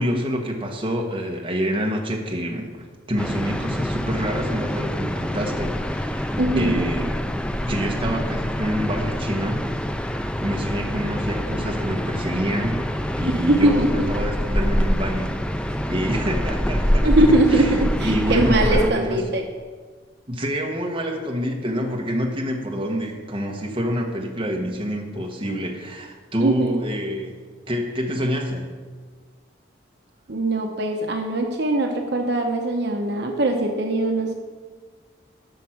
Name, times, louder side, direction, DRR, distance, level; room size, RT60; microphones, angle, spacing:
voice 1, 0.0-7.2 7.6-9.6 10.4-13.8 14.1-17.1 17.5-17.7 18.0-19.4 20.3-27.3 27.7-28.7, equal, 25° right, 0 dB, 1.3 m, -27 dB
sound 1, 3.2-18.9, equal, 5° left, 0.3 m, -25 dB
voice 2, 6.4-6.8 13.3-14.1 17.0-19.5 26.4-26.8 30.3-34.3, right 2 dB, 60° right, 2 dB, 1.0 m, -21 dB
10.5 x 6.3 x 6.0 m, 1.5 s
head